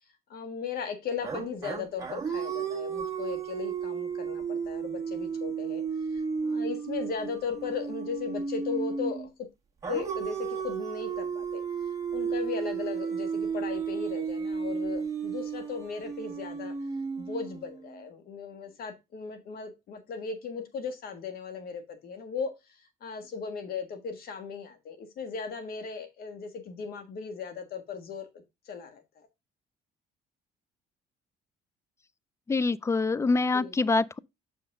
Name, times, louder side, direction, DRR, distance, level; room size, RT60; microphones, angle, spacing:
voice 1, 0.3-5.8 6.1-9.3 9.9-11.6 12.1-16.7 17.2-22.5 23.0-28.3 28.7-29.3 33.5-33.7, left 6 dB, 65° left, 1.8 m, -37 dB
sound 1, 1.2-9.3 9.8-17.9, right 6 dB, 20° right, 1.6 m, -33 dB
voice 2, 32.5-34.2, left 3 dB, 15° left, 0.4 m, -25 dB
6.5 x 5.7 x 3.6 m
cardioid pair, 110°, 17 cm